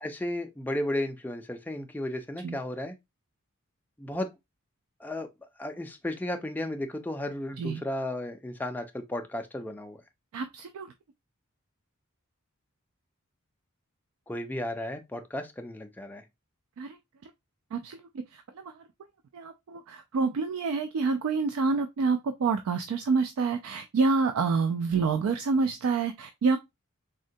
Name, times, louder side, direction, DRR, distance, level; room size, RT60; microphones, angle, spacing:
voice 1, 0.0-2.9 4.0-4.3 5.0-5.3 5.6-10.0 14.3-16.2, left 1 dB, 10° left, 0.4 m, -34 dB
voice 2, 10.3-10.9 16.8-17.0 17.7-18.9 19.3-26.6, right 4 dB, 75° right, 0.3 m, -28 dB
3.6 x 2.1 x 2.5 m
head